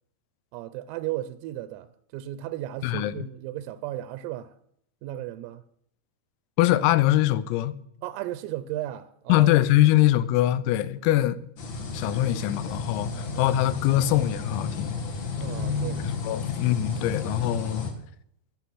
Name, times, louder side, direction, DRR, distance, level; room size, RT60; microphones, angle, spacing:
voice 1, 0.5-4.5 5.0-5.6 8.0-9.5 11.0-11.2 15.4-16.0, right 14 dB, 85° right, 3.3 m, -35 dB
voice 2, 2.8-3.1 6.6-7.8 9.3-11.4 11.9-15.0 16.0-17.9, left 14 dB, 85° left, 3.4 m, -23 dB
sound 1, 11.6-17.9, left 3 dB, 55° left, 2.0 m, -32 dB
21.5 x 7.2 x 6.1 m
omnidirectional pair, 5.9 m